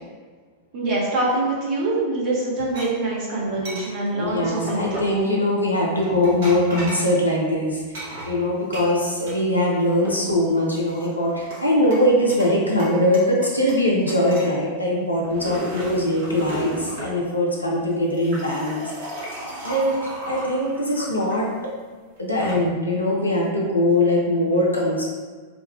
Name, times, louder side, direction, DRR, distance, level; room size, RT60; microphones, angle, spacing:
voice 1, 0.7-5.1, right 2 dB, 40° right, -5 dB, 1.1 m, -25 dB
sound 1, 2.7-2.9 3.7-3.9 4.7-5.2 6.0-7.1 7.9-9.4 9.8-10.4 10.8-11.6 11.9-12.5 12.8-13.8 14.1-14.5 15.1-17.2 17.9-21.4 22.2-22.5, right 1 dB, 60° right, 0.9 m, -34 dB
voice 2, 4.1-18.8 19.6-20.0 20.3-21.5 22.2-25.1, left 1 dB, 80° left, -2 dB, 0.6 m, -21 dB
4.8 x 2.2 x 2.3 m, 1.5 s
figure-of-eight pair, 90°, 0 cm